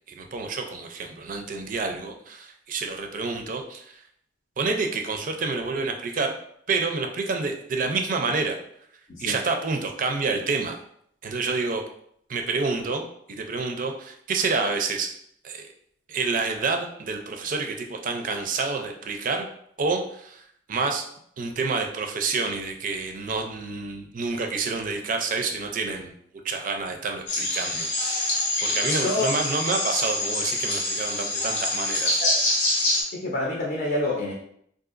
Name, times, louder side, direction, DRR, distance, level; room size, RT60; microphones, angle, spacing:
voice 1, 0.2-3.8 4.6-6.3 6.7-8.6 9.2-10.8 11.2-11.8 12.3-15.1 15.4-15.6 16.1-19.5 19.8-20.4 20.7-21.1 21.4-26.1 26.4-28.3 28.6-32.2, right 4 dB, 50° right, 4 dB, 0.4 m, -28 dB
sound 1, 27.3-33.0, left 2 dB, 90° left, 1.0 m, -25 dB
voice 2, 28.9-29.3 32.2-32.3 33.1-34.3, left 2 dB, 55° left, -3 dB, 0.6 m, -27 dB
3.8 x 2.6 x 2.5 m, 0.69 s
head